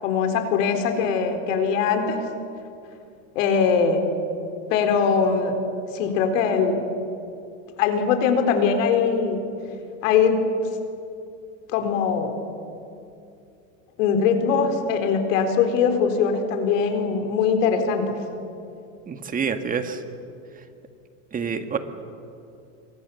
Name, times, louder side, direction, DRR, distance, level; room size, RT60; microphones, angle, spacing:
voice 1, 0.0-2.2 3.3-4.0 4.7-5.6 5.9-6.8 7.8-9.5 10.0-10.4 11.7-12.4 14.0-18.2, left 6 dB, 70° left, 6 dB, 4.2 m, -21 dB
voice 2, 19.1-20.0 21.3-21.8, right 6 dB, 20° right, 7 dB, 1.8 m, -27 dB
29.0 x 24.0 x 7.1 m, 2.6 s
supercardioid pair, 140°, 40 cm